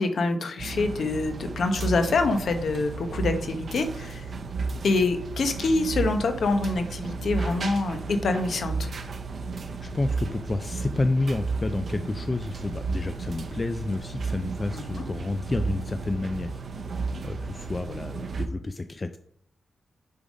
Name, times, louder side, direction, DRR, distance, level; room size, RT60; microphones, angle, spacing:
voice 1, 0.0-4.3 4.8-8.9 14.7-15.0, left 3 dB, 60° left, 6 dB, 0.9 m, -26 dB
sound 1, 0.6-18.5, right 4 dB, 50° right, 0.6 m, -33 dB
voice 2, 9.8-16.6 17.2-19.2, left 2 dB, 25° left, 8 dB, 0.3 m, -30 dB
6.7 x 3.7 x 5.2 m, 0.69 s
wide cardioid pair, 130°, 0 cm